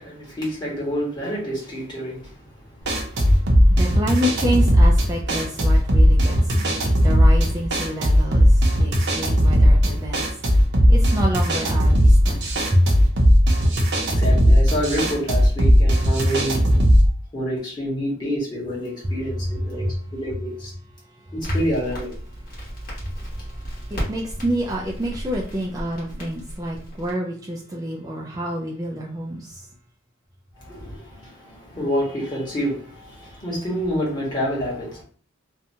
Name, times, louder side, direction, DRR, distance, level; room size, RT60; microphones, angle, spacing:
voice 1, 0.0-3.3 14.2-16.6 17.3-20.7 21.3-22.1 30.6-35.0, equal, 20° left, -5 dB, 1.2 m, -28 dB
sound 1, 2.8-17.1, equal, 60° right, 0.7 m, -17 dB
voice 2, 3.0-13.1 19.0-19.1 19.7-20.0 21.5-21.6 23.0-29.7, equal, 20° right, -2 dB, 0.3 m, -28 dB
Crackle, 21.4-27.1, equal, 45° left, 1.2 m, -34 dB
2.7 x 2.2 x 2.6 m, 0.43 s
head